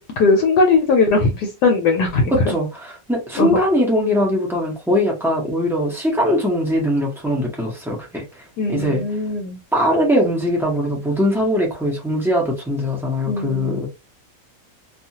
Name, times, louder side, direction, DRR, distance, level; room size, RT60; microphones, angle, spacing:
voice 1, 0.2-2.5 3.4-3.6 8.6-9.6 13.3-13.8, left 3 dB, 75° left, 1.2 m, -19 dB
voice 2, 2.3-9.0 9.7-13.9, equal, 5° right, 0.4 m, -21 dB
2.7 x 2.4 x 2.8 m
omnidirectional pair, 1.8 m